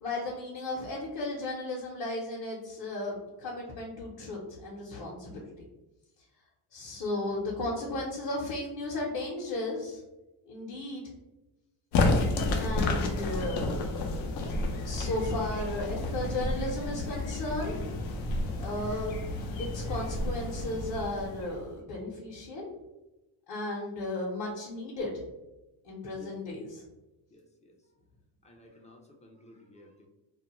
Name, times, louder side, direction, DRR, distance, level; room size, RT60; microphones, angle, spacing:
voice 1, 0.0-5.4 6.7-10.0 10.5-11.1 12.6-14.2 14.7-17.8 18.6-19.2 19.6-22.7 23.5-25.1 25.8-26.8, left 2 dB, 50° left, -4 dB, 0.8 m, -35 dB
sound 1, 11.9-21.7, left 2 dB, 85° left, 0.6 m, -31 dB
voice 2, 27.3-27.8 28.4-30.1, left 1 dB, 15° left, 1 dB, 0.3 m, -54 dB
2.4 x 2.1 x 2.9 m, 1.0 s
cardioid pair, 100°, 47 cm